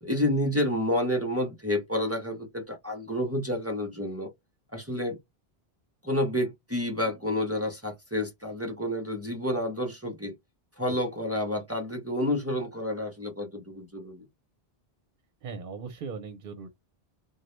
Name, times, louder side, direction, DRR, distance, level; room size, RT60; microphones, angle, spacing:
voice 1, 0.0-4.3 4.7-5.2 6.0-10.3 10.8-14.3, left 1 dB, 20° right, 0.4 m, -29 dB
voice 2, 15.4-16.7, right 5 dB, 65° right, 0.7 m, -38 dB
2.1 x 2.0 x 2.9 m
omnidirectional pair, 1.0 m